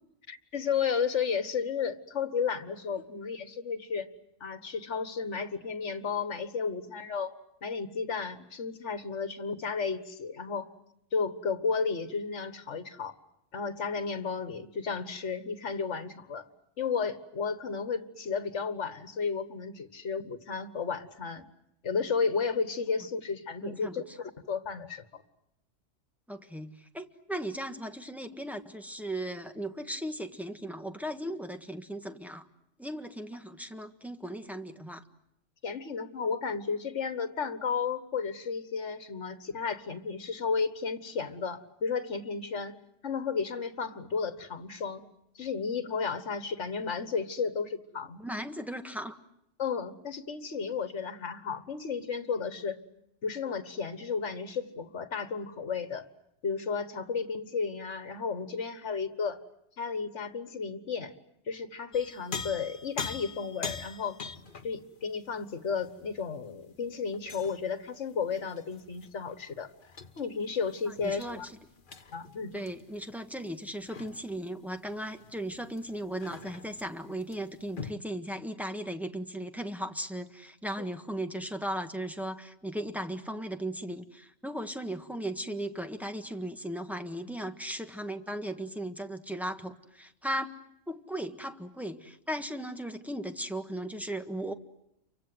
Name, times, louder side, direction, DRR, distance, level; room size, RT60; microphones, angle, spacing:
voice 1, 0.3-4.1 4.4-7.3 7.6-10.7 11.1-13.1 13.5-16.5 16.8-21.4 21.8-25.2 35.6-42.8 43.0-45.0 45.3-48.2 49.6-52.8 53.2-56.1 56.4-59.4 59.8-61.1 61.5-64.2 64.6-69.7 70.2-71.5 72.1-72.5 80.8-80.9, left 5 dB, 70° left, 11 dB, 1.8 m, -33 dB
voice 2, 23.6-24.0 26.3-32.5 32.8-35.0 48.2-49.2 71.0-71.5 72.5-90.5 90.9-94.5, right 1 dB, ahead, 5 dB, 1.5 m, -37 dB
sound 1, 61.9-67.7 68.1-77.9, left 5 dB, 45° left, 1.3 m, -44 dB
29.5 x 24.5 x 7.9 m, 0.80 s
omnidirectional pair, 1.3 m